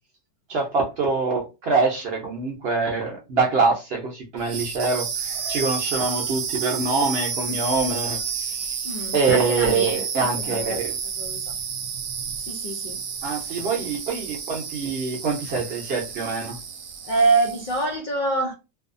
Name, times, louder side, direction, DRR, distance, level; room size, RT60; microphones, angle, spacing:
voice 1, 0.5-5.1 5.5-8.2 8.5-8.7 9.1-10.9 13.2-16.6, right 4 dB, 55° right, 0.7 m, -24 dB
sound 1, 4.4-17.9, right 6 dB, 85° right, 1.0 m, -31 dB
voice 2, 8.8-10.8 11.2-11.4 12.5-13.0 17.1-18.5, right 3 dB, 80° left, 0.4 m, -25 dB
2.6 x 2.3 x 2.4 m
omnidirectional pair, 1.5 m